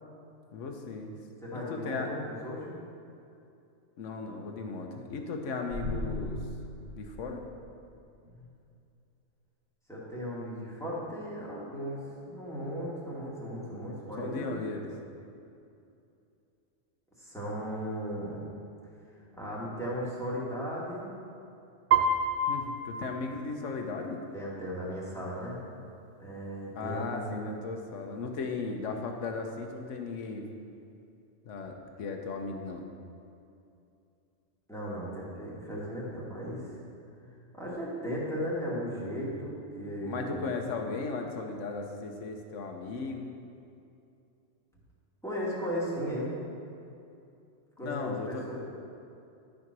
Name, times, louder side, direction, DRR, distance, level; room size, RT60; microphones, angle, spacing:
voice 1, 0.5-1.1 1.5-2.1 4.0-6.4 7.0-7.4 14.2-14.9 22.5-24.2 26.7-30.4 31.4-32.8 37.3-37.4 40.0-43.3 47.8-48.5, left 4 dB, 90° left, 3 dB, 1.2 m, -36 dB
voice 2, 1.4-2.8 8.2-8.5 9.9-14.5 17.2-18.4 19.4-21.1 24.3-25.6 26.2-27.4 34.7-36.6 37.6-40.5 45.2-46.3 47.8-48.6, equal, ahead, -7 dB, 2.3 m, -36 dB
sound 1, 5.7-8.0, left 1 dB, 40° right, 2.8 m, -38 dB
Piano, 21.9-23.9, right 3 dB, 55° right, 0.7 m, -29 dB
12.0 x 5.1 x 6.0 m, 2.6 s
omnidirectional pair, 1.2 m